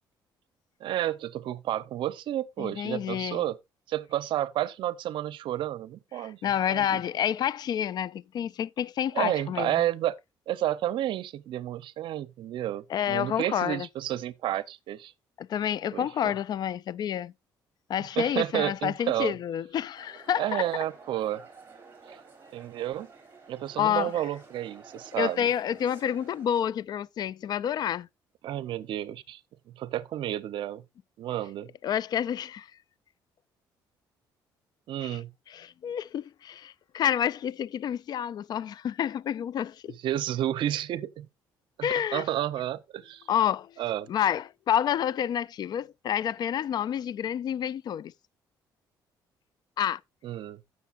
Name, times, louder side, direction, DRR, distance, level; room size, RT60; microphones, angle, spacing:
voice 1, 0.8-3.6 3.9-7.0 9.1-10.2 10.5-15.1 15.9-16.3 18.2-19.3 20.4-21.4 22.5-23.1 23.5-25.5 28.4-29.4 29.7-30.8 31.2-31.7 34.9-35.3 39.9-41.3 41.8-43.3 43.8-44.1 50.2-50.6, right 13 dB, 70° right, 0.7 m, -31 dB
voice 2, 2.6-3.4 6.2-9.8 12.9-13.9 15.4-17.3 17.9-20.7 23.8-24.1 25.1-28.1 31.8-32.7 35.0-35.2 35.5-40.0 41.8-42.2 43.3-43.7 44.1-48.1 49.8-50.0, left 9 dB, 55° left, 0.4 m, -29 dB
sound 1, 20.0-26.7, right 4 dB, 25° right, 3.8 m, -51 dB
15.5 x 6.3 x 2.5 m
cardioid pair, 100°, 9 cm